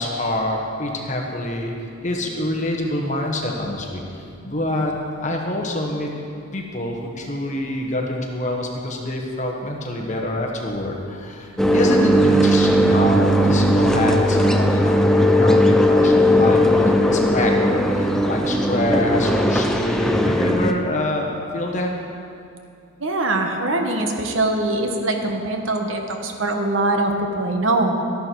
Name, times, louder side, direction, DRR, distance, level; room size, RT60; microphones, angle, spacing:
voice 1, 0.0-1.7 2.0-6.1 6.5-21.9, left 1 dB, 35° left, 1 dB, 1.4 m, -26 dB
sound 1, 11.6-20.7, equal, ahead, 0.5 m, -17 dB
voice 2, 23.0-28.0, right 2 dB, 65° right, 4 dB, 1.2 m, -22 dB
13.5 x 11.0 x 4.7 m, 2.5 s
head